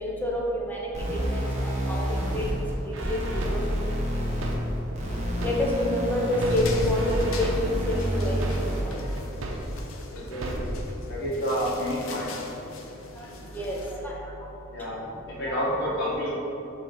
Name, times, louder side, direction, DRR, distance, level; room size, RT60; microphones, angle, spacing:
voice 1, 0.0-0.4 0.7-0.8 1.9-2.0 2.3-2.4 3.1-3.2 3.5-3.6 5.4-7.0 7.4-8.4 13.6-13.8 14.0-14.1 15.5-15.6, left 1 dB, 10° left, -3 dB, 0.8 m, -27 dB
sound 1, 0.9-8.9, equal, 35° right, 1.1 m, -29 dB
sound 2, 2.9-5.9 6.3-9.9 10.3-10.9, right 1 dB, 75° right, 0.7 m, -35 dB
sound 3, 6.5-13.9, left 3 dB, 90° left, 0.7 m, -42 dB
voice 2, 10.1-10.7 11.1-12.3 14.7-16.3, equal, 55° left, -7 dB, 1.3 m, -29 dB
5.3 x 3.7 x 5.3 m, 3.0 s
head